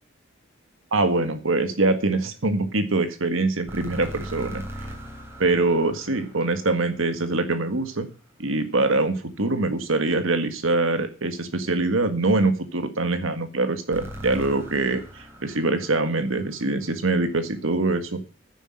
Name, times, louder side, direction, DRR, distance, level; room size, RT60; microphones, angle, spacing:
voice 1, 0.9-4.6 5.4-8.1 8.4-18.2, right 2 dB, 80° right, 9 dB, 1.7 m, -24 dB
sound 1, 3.7-7.8 13.9-17.1, equal, 15° right, 3.8 m, -40 dB
10.0 x 10.0 x 6.5 m, 0.35 s
head